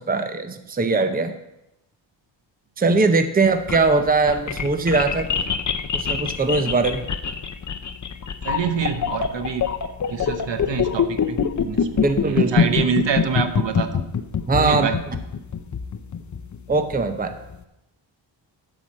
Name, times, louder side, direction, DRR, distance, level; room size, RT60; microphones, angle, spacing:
voice 1, 0.0-1.3 2.8-5.4 5.9-7.0 12.0-12.7 14.5-14.9 16.7-17.3, right 3 dB, 20° right, 8 dB, 0.6 m, -21 dB
sound 1, 3.4-17.6, left 7 dB, 40° left, 0.7 m, -24 dB
voice 2, 8.4-9.7 10.1-14.1 14.6-15.0, right 6 dB, 70° right, 9 dB, 1.0 m, -26 dB
12.0 x 5.0 x 7.2 m, 0.89 s
wide cardioid pair, 170°, 45 cm